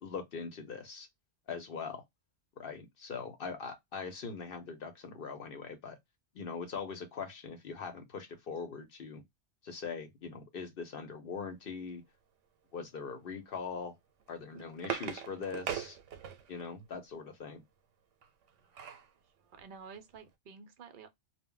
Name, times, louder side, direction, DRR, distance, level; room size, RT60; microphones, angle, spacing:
voice 1, 0.0-1.1 1.5-2.0 2.6-6.0 6.3-9.2 9.6-12.0 12.7-13.9 14.3-16.0 16.5-17.6, left 5 dB, 55° left, 0.8 m, -41 dB
sound 1, 14.2-16.7 18.2-19.1 19.6-19.7 20.0-20.2, right 9 dB, 90° right, 0.9 m, -40 dB
voice 2, 19.2-21.1, right 5 dB, 60° right, 0.5 m, -51 dB
2.1 x 2.1 x 3.6 m
omnidirectional pair, 1.2 m